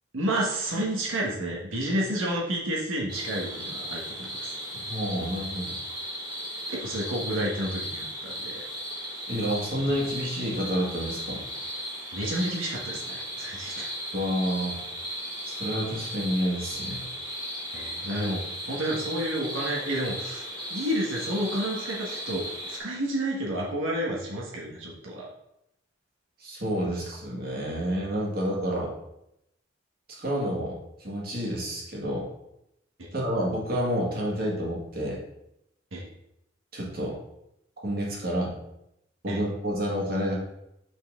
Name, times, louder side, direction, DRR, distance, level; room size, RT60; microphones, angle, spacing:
voice 1, 0.1-4.5 6.7-8.6 12.1-13.9 17.7-20.4 20.7-25.3 33.0-33.1 35.9-36.1 39.3-39.4, right 1 dB, 85° right, -3 dB, 1.4 m, -30 dB
sound 1, 3.1-22.8, equal, 20° right, 1.9 m, -36 dB
voice 2, 4.7-5.8 9.3-11.4 14.1-14.8 15.5-17.0 26.4-28.9 30.2-32.3 33.1-35.2 36.7-37.2 37.8-38.6 39.2-40.4, equal, 50° right, -3 dB, 1.9 m, -29 dB
5.8 x 5.8 x 3.6 m, 0.83 s
head